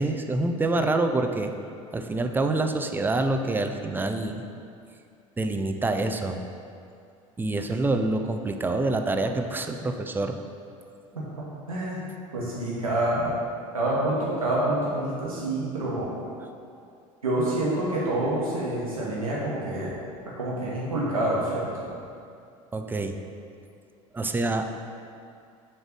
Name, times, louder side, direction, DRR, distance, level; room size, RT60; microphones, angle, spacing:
voice 1, 0.0-1.5 1.9-4.4 5.4-6.4 7.4-10.4 22.7-23.2 24.1-24.7, right 2 dB, 10° right, 6 dB, 0.4 m, -26 dB
voice 2, 11.1-13.3 13.7-16.1 17.2-19.9 20.3-21.9, right 1 dB, 85° right, -6 dB, 1.1 m, -27 dB
7.1 x 3.3 x 5.1 m, 2.5 s
figure-of-eight pair, 70°, 17 cm